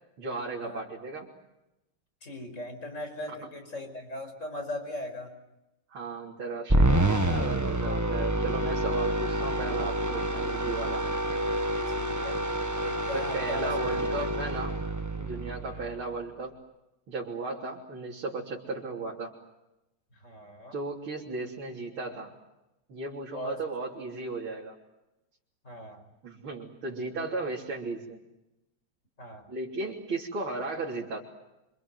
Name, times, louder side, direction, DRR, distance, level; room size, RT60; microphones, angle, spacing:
voice 1, 0.2-1.3 3.3-3.4 5.9-11.0 13.1-14.8 15.2-16.6 17.1-19.3 20.7-22.3 22.9-24.8 26.2-28.2 29.5-31.2, right 3 dB, 80° right, -4 dB, 4.2 m, -35 dB
voice 2, 2.2-5.4 11.9-12.5 12.8-14.3 15.7-15.9 20.1-20.7 23.3-23.6 25.6-26.0 29.2-29.5, left 1 dB, 35° left, 6 dB, 5.4 m, -39 dB
sound 1, 6.7-16.1, right 1 dB, 10° right, 1.1 m, -28 dB
27.5 x 26.5 x 7.9 m, 0.94 s
omnidirectional pair, 2.3 m